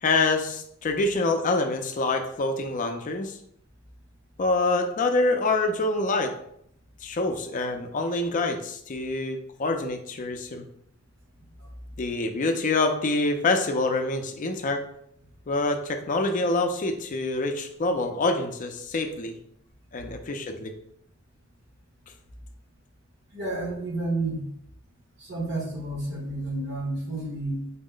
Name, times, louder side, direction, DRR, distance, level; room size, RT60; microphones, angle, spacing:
voice 1, 0.0-3.4 4.4-6.3 7.0-10.7 12.0-14.8 15.5-19.4 19.9-20.7, left 2 dB, 40° left, 5 dB, 0.4 m, -26 dB
voice 2, 23.3-24.5 25.2-27.7, right 2 dB, 60° right, -2 dB, 1.1 m, -30 dB
4.1 x 2.1 x 3.7 m, 0.72 s
head